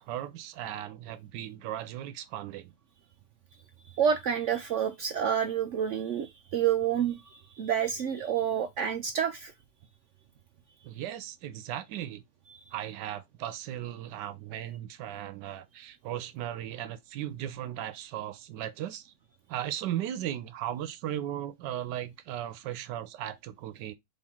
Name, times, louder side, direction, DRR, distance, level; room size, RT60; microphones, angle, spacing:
voice 1, 0.0-2.7 10.8-12.2 12.7-19.1 19.5-23.9, right 12 dB, 90° right, 1.3 m, -37 dB
voice 2, 4.0-9.5, right 8 dB, 75° right, 0.7 m, -28 dB
4.4 x 3.2 x 3.5 m
omnidirectional pair, 1.8 m